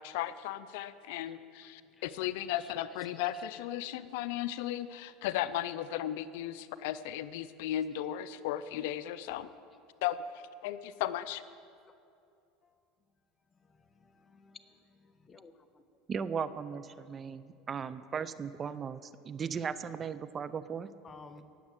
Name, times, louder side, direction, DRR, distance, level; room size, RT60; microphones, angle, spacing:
voice 1, 0.0-9.5 10.0-10.2 10.6-11.4, left 12 dB, 75° left, 14 dB, 0.5 m, -35 dB
voice 2, 13.7-14.7 15.2-15.5 21.0-21.4, left 4 dB, 25° left, 8 dB, 1.1 m, -54 dB
voice 3, 16.1-20.9, right 6 dB, 30° right, 15 dB, 0.5 m, -37 dB
18.5 x 7.3 x 7.5 m, 2.5 s
supercardioid pair, 105°, 0 cm